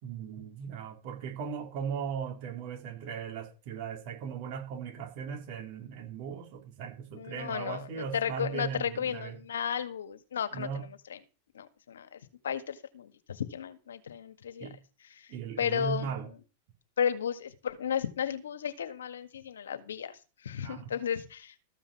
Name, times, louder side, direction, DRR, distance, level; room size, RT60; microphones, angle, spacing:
voice 1, 0.0-9.4 10.5-10.9 14.6-14.8 15.3-16.3 20.6-20.9, right 7 dB, 55° right, 3.9 m, -38 dB
voice 2, 7.1-11.2 11.5-14.7 15.1-15.3 15.6-16.1 17.0-21.5, left 8 dB, 85° left, 1.7 m, -34 dB
14.0 x 5.7 x 7.1 m
hypercardioid pair, 110°, 0 cm